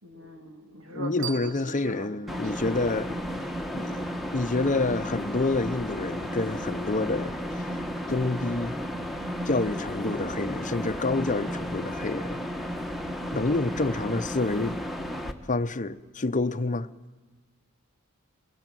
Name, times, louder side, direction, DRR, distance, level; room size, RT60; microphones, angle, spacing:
voice 1, 0.0-2.8, right 1 dB, 70° right, 3.0 m, -42 dB
voice 2, 0.9-3.2 3.7-7.7 8.1-8.8 9.5-12.5 13.3-14.8 15.5-16.9, left 2 dB, 35° left, 0.8 m, -28 dB
sound 1, 1.2-4.0, right 10 dB, 40° right, 1.5 m, -44 dB
sound 2, 2.3-15.3, equal, ahead, 1.5 m, -33 dB
23.5 x 22.0 x 9.2 m
head